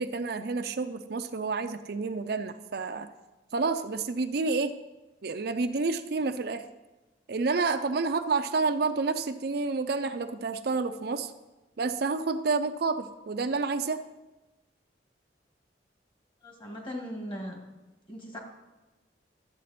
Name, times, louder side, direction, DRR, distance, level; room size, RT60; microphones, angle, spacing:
voice 1, 0.0-3.1 3.5-4.7 5.2-6.7 7.3-11.3 11.8-14.0, right 4 dB, 60° right, 8 dB, 0.5 m, -29 dB
voice 2, 16.4-17.6 18.1-18.4, equal, 30° left, 1 dB, 1.9 m, -38 dB
12.5 x 7.6 x 4.2 m, 1.1 s
head